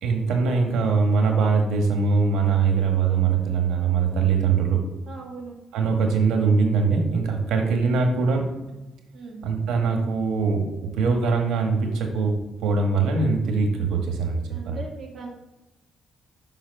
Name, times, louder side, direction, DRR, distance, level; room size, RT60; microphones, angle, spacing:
voice 1, 0.0-4.8 5.7-8.5 9.4-10.7 10.9-14.8, right 5 dB, 85° right, 3 dB, 1.5 m, -22 dB
voice 2, 5.1-5.6 9.1-9.4 14.5-15.3, right 4 dB, 45° right, 0 dB, 2.0 m, -38 dB
5.8 x 4.1 x 5.4 m, 1.0 s
cardioid pair, 90°, 0 cm